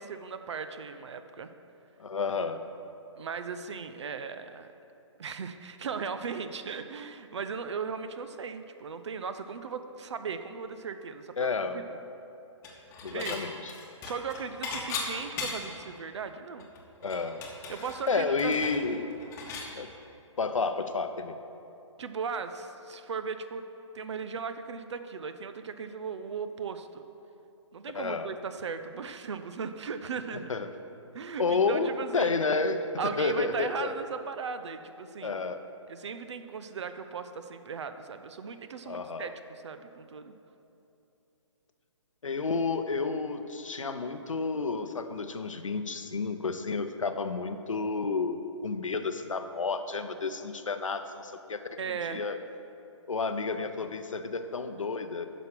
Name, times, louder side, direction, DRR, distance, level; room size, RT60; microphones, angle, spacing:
voice 1, 0.0-1.5 3.2-4.7 5.2-11.4 11.7-12.0 13.1-13.4 14.0-16.7 17.7-18.6 22.0-23.6 23.9-27.1 27.7-30.5 31.1-32.3 33.0-35.3 35.9-40.3 51.8-52.3, right 5 dB, 65° right, 10 dB, 0.7 m, -37 dB
voice 2, 2.0-2.6 11.4-11.8 13.0-13.7 17.0-17.4 18.1-19.1 19.8-19.9 20.4-21.4 27.9-28.3 30.5-30.7 31.4-34.0 35.2-35.6 38.9-39.3 42.2-51.7 52.1-52.4 53.1-55.3, left 4 dB, 85° left, 9 dB, 0.8 m, -31 dB
Dishes pots and pans / Chink clink, 12.6-13.4 13.7-15.8 16.2-16.3 16.6-19.7, left 4 dB, 20° left, 1.1 m, -38 dB
10.0 x 6.2 x 6.0 m, 2.8 s
hypercardioid pair, 145°, 16 cm